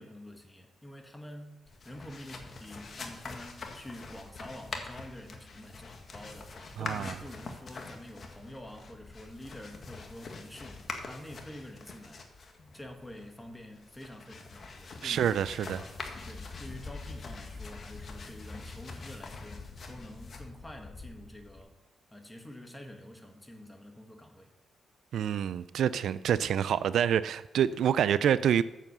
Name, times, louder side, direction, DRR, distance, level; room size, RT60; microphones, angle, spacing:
voice 1, 0.0-12.3 12.7-21.8 22.1-24.5, left 1 dB, 10° left, 1.6 m, -47 dB
sound 1, 1.7-21.6, left 3 dB, 50° left, 1.6 m, -44 dB
voice 2, 6.8-7.2 15.0-15.8 25.1-28.6, right 9 dB, 80° right, 0.3 m, -27 dB
7.9 x 7.2 x 6.8 m
cardioid pair, 85°, 0 cm